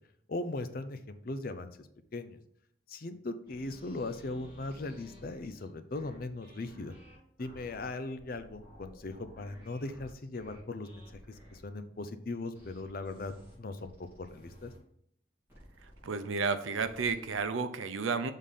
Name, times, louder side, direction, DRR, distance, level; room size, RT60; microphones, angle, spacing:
voice 1, 0.3-1.9 2.1-2.4 2.9-6.9 7.4-11.0 11.5-13.3 13.6-13.9 14.3-14.7, left 2 dB, 45° left, 10 dB, 0.5 m, -39 dB
sound 1, 3.5-11.6 12.5-14.8 15.5-16.0 16.7-17.5, equal, 15° right, 3.0 m, -55 dB
voice 2, 16.0-18.3, right 4 dB, 85° right, 10 dB, 0.6 m, -32 dB
6.6 x 3.7 x 5.5 m, 0.69 s
head